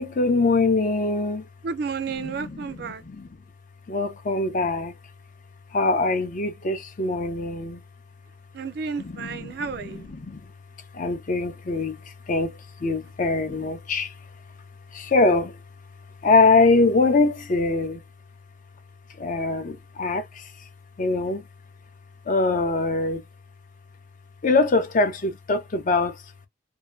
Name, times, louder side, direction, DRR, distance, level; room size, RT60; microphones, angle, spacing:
voice 1, 0.0-1.5 2.2-3.3 3.9-4.9 5.7-7.8 9.0-9.5 9.9-10.4 10.9-12.0 12.3-14.1 14.9-15.6 16.2-18.0 19.2-20.5 21.0-21.4 22.3-23.2 24.4-26.2, left 3 dB, 45° left, 0.5 m, -23 dB
voice 2, 1.6-3.0 8.5-10.1, right 5 dB, 60° right, 0.4 m, -31 dB
2.7 x 2.2 x 2.2 m
head